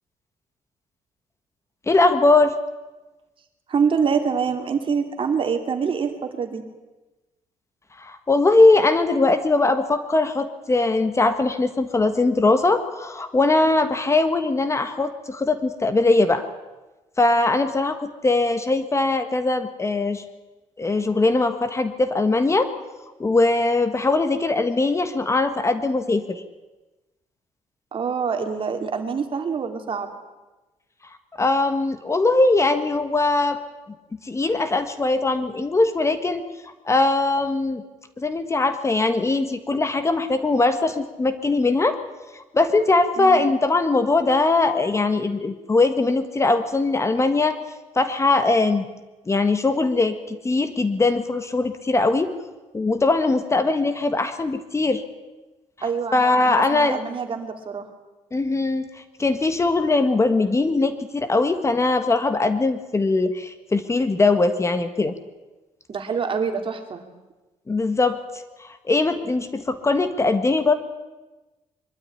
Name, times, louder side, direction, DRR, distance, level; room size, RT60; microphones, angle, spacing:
voice 1, 1.9-2.6 8.0-16.4 17.2-20.2 20.8-22.7 23.2-26.4 31.4-33.6 34.2-36.4 36.8-37.8 38.2-42.0 42.3-47.6 47.9-48.8 49.3-52.3 52.7-55.0 56.1-57.0 58.3-58.8 59.2-65.1 67.7-68.2 68.6-70.7, left 3 dB, 20° left, 10 dB, 1.5 m, -21 dB
voice 2, 3.7-6.6 27.9-30.1 43.2-43.5 55.8-57.9 65.9-67.1, right 6 dB, 45° right, 6 dB, 2.9 m, -25 dB
23.0 x 12.5 x 10.0 m, 1.1 s
cardioid pair, 110°, 13 cm